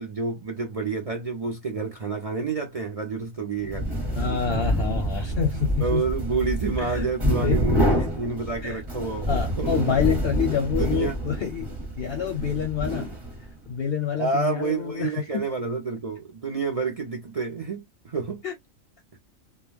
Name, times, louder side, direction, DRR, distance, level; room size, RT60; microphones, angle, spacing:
voice 1, 0.0-3.9 5.8-9.3 9.6-9.7 10.7-11.2 14.2-18.4, right 4 dB, 55° right, 0.4 m, -29 dB
sound 1, 3.6-13.6, equal, 25° right, 0.9 m, -27 dB
voice 2, 4.2-6.0 6.8-7.6 8.6-8.8 9.3-11.7 12.0-13.1 13.7-15.4 18.4-18.5, left 7 dB, 60° left, 0.7 m, -27 dB
2.3 x 2.1 x 3.1 m
omnidirectional pair, 1.4 m